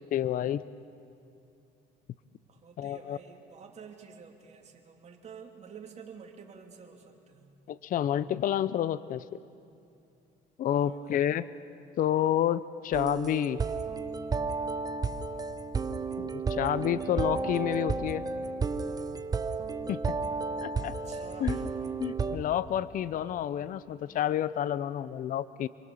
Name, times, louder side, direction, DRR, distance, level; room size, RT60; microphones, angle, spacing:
voice 1, 0.1-0.6 2.8-3.2 7.7-9.2 10.6-11.5 12.0-13.6 16.2-18.2 19.9-20.2 20.6-20.9 21.4-21.6 22.0-25.7, left 11 dB, 55° left, 16 dB, 0.6 m, -29 dB
voice 2, 2.5-7.5 10.8-11.3 20.9-21.9, right 6 dB, 40° right, 2 dB, 3.1 m, -49 dB
sound 1, 12.9-22.4, right 4 dB, 20° right, 0.9 m, -32 dB
28.0 x 22.5 x 7.2 m, 2.6 s
cardioid pair, 110°, 17 cm